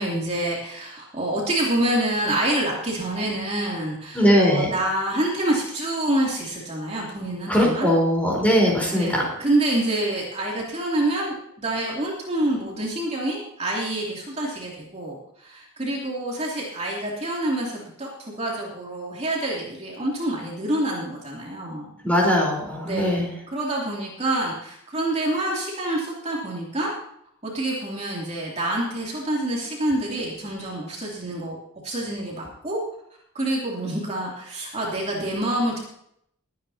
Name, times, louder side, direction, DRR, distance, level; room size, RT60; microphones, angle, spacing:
voice 1, 0.0-7.9 8.5-8.6 8.9-21.9 22.8-23.2 23.5-26.9 27.4-31.6 31.8-32.8 33.3-35.8, right 1 dB, 30° right, -3 dB, 2.9 m, -27 dB
voice 2, 4.1-4.7 7.5-9.2 22.0-23.3, equal, 5° left, -2 dB, 4.2 m, -20 dB
21.5 x 9.6 x 2.8 m, 0.72 s
head